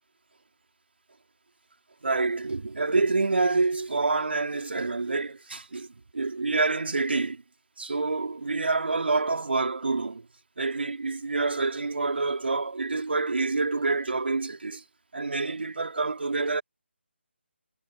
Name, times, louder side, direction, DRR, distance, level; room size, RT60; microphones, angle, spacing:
voice 1, 2.0-5.9 6.1-7.4 7.8-10.3 10.6-14.8 15.1-16.6, right 3 dB, 60° right, 3.6 m, -27 dB
figure-of-eight pair, 150°, 7 cm